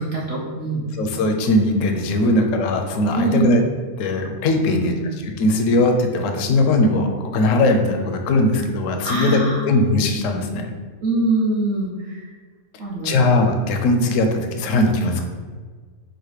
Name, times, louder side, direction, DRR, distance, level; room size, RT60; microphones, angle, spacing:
voice 1, 0.0-0.8 2.2-2.5 3.1-3.5 4.6-5.1 9.0-9.6 11.0-12.3 12.8-13.2, right 2 dB, 50° right, -6 dB, 0.9 m, -24 dB
voice 2, 1.0-3.6 4.0-4.9 5.2-10.7 13.0-15.2, left 2 dB, 65° left, 4 dB, 0.9 m, -19 dB
4.0 x 2.5 x 4.7 m, 1.5 s
omnidirectional pair, 1.6 m